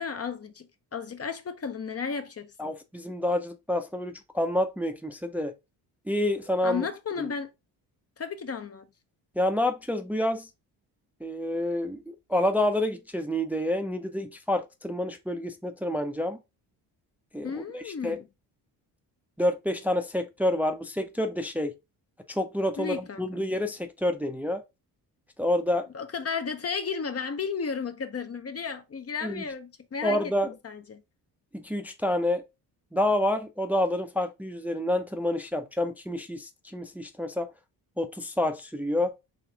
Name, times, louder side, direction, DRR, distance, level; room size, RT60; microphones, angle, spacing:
voice 1, 0.0-2.7 6.6-7.5 8.2-8.9 17.4-18.2 22.8-23.2 25.9-30.2 30.6-31.0, left 6 dB, 35° left, 0.7 m, -33 dB
voice 2, 2.6-5.5 6.1-6.9 7.2-7.3 9.4-10.5 11.2-12.0 12.3-16.4 17.3-18.2 19.4-21.7 22.3-24.6 25.4-25.9 29.2-29.4 30.0-30.5 31.5-32.4 32.9-37.5 38.0-39.1, left 1 dB, 5° right, 0.6 m, -28 dB
4.3 x 3.2 x 3.4 m
supercardioid pair, 65°, 45 cm